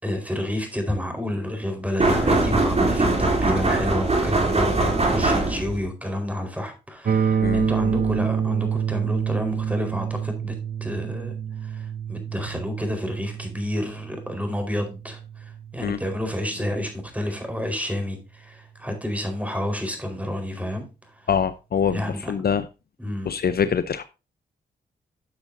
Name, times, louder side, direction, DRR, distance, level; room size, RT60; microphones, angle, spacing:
voice 1, 0.0-10.5 10.8-11.3 11.6-20.9 21.1-21.3 21.9-22.3 23.0-23.3, left 1 dB, 5° right, 5 dB, 4.5 m, -30 dB
sound 1, 2.0-5.9, right 2 dB, 35° right, 3.3 m, -21 dB
sound 2, 7.1-17.0, right 7 dB, 55° right, 0.9 m, -28 dB
voice 2, 21.3-22.7 23.2-24.0, left 7 dB, 55° left, 13 dB, 0.7 m, -24 dB
12.5 x 6.8 x 2.7 m, 0.28 s
supercardioid pair, 50°, 19 cm